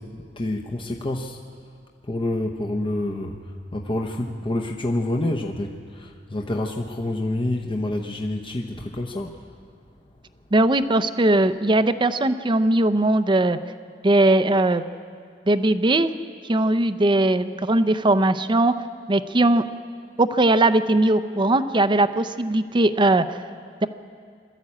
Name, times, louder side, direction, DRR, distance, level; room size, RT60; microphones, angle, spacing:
voice 1, 0.0-1.4 2.1-3.4 3.7-9.3, left 1 dB, 30° left, 1 dB, 0.9 m, -27 dB
voice 2, 10.5-13.6 14.0-14.8 15.5-16.1 16.5-18.7 19.1-19.6 20.2-23.2, right 2 dB, 25° right, 12 dB, 0.6 m, -19 dB
22.0 x 13.5 x 8.7 m, 2.2 s
head